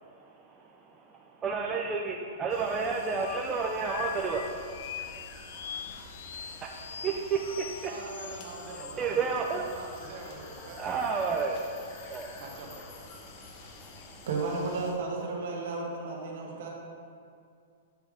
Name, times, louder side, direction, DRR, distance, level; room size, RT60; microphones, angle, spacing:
voice 1, 0.1-4.5 5.6-5.8 6.6-7.9 9.0-9.7 10.8-11.7 12.1-12.4 13.3-14.2, right 5 dB, 20° right, 0 dB, 0.4 m, -32 dB
Borneo Jungle - Day, 2.5-14.9, left 3 dB, 40° left, 0.8 m, -49 dB
sound 1, 3.1-8.9, left 9 dB, 75° left, 0.3 m, -42 dB
sound 2, 7.4-12.6, left 1 dB, 60° left, 1.7 m, -53 dB
voice 2, 7.8-10.8 12.4-12.9, right 3 dB, 45° right, -1 dB, 1.2 m, -44 dB
voice 3, 14.3-16.7, right 3 dB, 70° right, -1 dB, 1.3 m, -33 dB
8.2 x 3.3 x 4.9 m, 2.3 s
hypercardioid pair, 145°, 0 cm